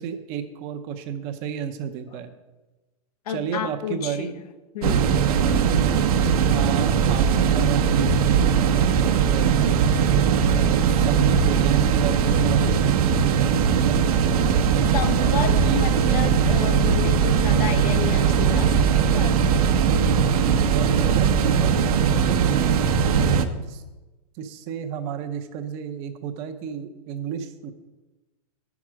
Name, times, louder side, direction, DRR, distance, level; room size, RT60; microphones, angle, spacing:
voice 1, 0.0-2.3 3.3-4.3 5.1-6.0 6.5-9.6 10.5-13.9 14.8-15.8 20.6-23.8 24.4-27.7, right 7 dB, 35° right, 7 dB, 0.7 m, -32 dB
voice 2, 3.3-4.3 4.7-5.2 14.9-19.7, left 8 dB, 70° left, 8 dB, 1.0 m, -31 dB
sound 1, 4.8-23.5, right 7 dB, 65° right, 0.8 m, -20 dB
8.7 x 6.0 x 6.2 m, 1.1 s
supercardioid pair, 155°, 20 cm